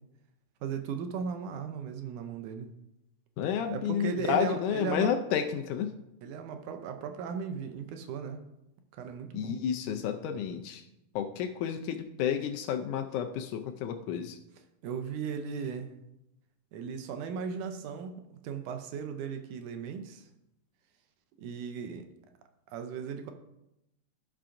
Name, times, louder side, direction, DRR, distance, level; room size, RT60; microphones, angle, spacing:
voice 1, 0.6-2.7 3.7-5.1 6.2-8.4 9.0-9.6 14.8-16.0 16.7-20.3 21.4-22.1 22.7-23.3, right 6 dB, 75° right, 6 dB, 2.1 m, -37 dB
voice 2, 3.4-5.9 9.3-10.8 11.2-14.4, left 8 dB, 80° left, 6 dB, 1.9 m, -31 dB
16.0 x 5.8 x 2.5 m, 0.86 s
omnidirectional pair, 3.8 m